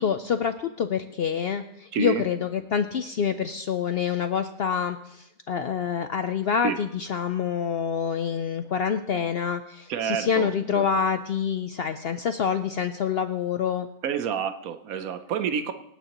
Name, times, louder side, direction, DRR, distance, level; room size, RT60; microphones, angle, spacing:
voice 1, 0.0-13.9, left 7 dB, 60° left, 9 dB, 0.7 m, -27 dB
voice 2, 1.9-2.2 6.6-6.8 9.9-10.5 10.7-10.8 14.0-15.7, right 7 dB, 90° right, 9 dB, 1.2 m, -28 dB
26.0 x 9.1 x 3.0 m, 0.81 s
omnidirectional pair, 1.4 m